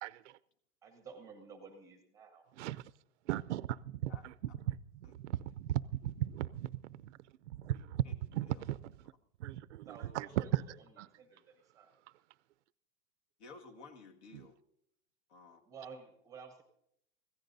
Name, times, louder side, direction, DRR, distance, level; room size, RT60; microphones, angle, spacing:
voice 1, 0.0-0.4 2.6-2.8 3.3-4.8 5.2-7.2 7.5-8.0 8.3-8.9 9.4-11.1 14.3-14.5, right 13 dB, 60° right, 0.5 m, -37 dB
voice 2, 0.8-2.5 9.9-10.5 11.2-12.0 15.7-16.6, right 5 dB, 10° right, 0.9 m, -52 dB
voice 3, 13.4-14.6 15.3-15.6, left 4 dB, 55° left, 2.0 m, -54 dB
24.5 x 16.5 x 2.7 m
supercardioid pair, 175°, 39 cm